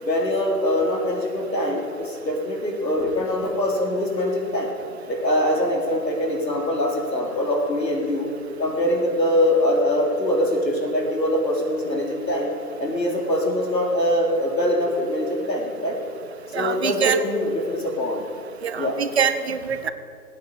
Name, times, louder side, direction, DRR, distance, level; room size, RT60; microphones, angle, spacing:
voice 1, 0.0-4.7 5.1-8.3 8.6-12.5 12.8-16.0 16.5-18.2 18.8-19.0, left 1 dB, 80° left, 1 dB, 4.5 m, -23 dB
voice 2, 16.5-17.2 18.6-19.9, right 7 dB, 40° right, 10 dB, 0.9 m, -24 dB
18.0 x 9.2 x 8.8 m, 2.3 s
figure-of-eight pair, 145°, 49 cm